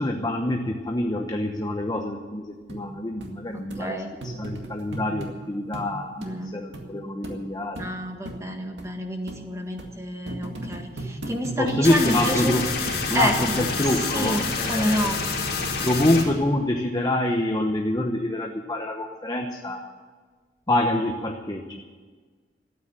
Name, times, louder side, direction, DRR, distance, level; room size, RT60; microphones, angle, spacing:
voice 1, 0.0-6.2 6.5-7.8 11.6-12.6 13.1-15.1 15.8-19.8 20.7-21.8, left 1 dB, 25° left, 3 dB, 1.0 m, -26 dB
sound 1, 2.7-2.8 3.2-3.3 3.7-3.8 4.2-5.3 5.7-5.9 6.2-6.3 6.7-6.9 7.2-7.4 7.8-7.9 8.2-8.4 8.8-8.9 9.3-9.4 9.8-9.9 10.3-11.8 12.2-12.4 12.9-13.2 13.6-14.0 14.6-14.7, right 2 dB, 85° right, 2.1 m, -35 dB
voice 2, 3.5-4.1 6.2-6.6 7.8-12.6 13.1-13.3 14.1-15.2, equal, 15° right, 3 dB, 1.7 m, -29 dB
sound 2, 11.8-16.2, left 4 dB, 60° left, 3.0 m, -28 dB
13.5 x 9.3 x 10.0 m, 1.5 s
head